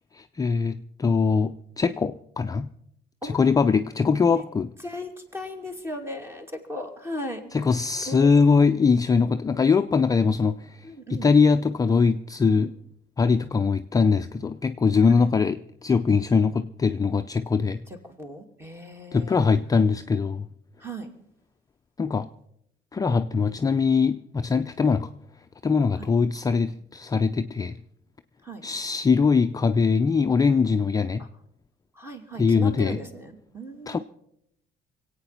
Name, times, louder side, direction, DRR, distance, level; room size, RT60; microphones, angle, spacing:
voice 1, 0.1-2.7 3.2-4.7 7.5-12.7 13.2-17.8 19.1-20.5 22.0-22.3 22.9-25.1 25.6-27.8 28.6-31.2 32.4-33.0 33.9-34.0, left 5 dB, 20° left, 8 dB, 0.5 m, -22 dB
voice 2, 4.8-7.4 8.0-8.3 10.8-11.3 12.5-12.7 15.1-15.2 18.2-19.4 20.8-21.1 26.0-26.1 28.4-28.6 32.0-34.0, equal, 15° right, 5 dB, 2.6 m, -37 dB
23.5 x 8.9 x 5.7 m, 0.74 s
cardioid pair, 110°, 17 cm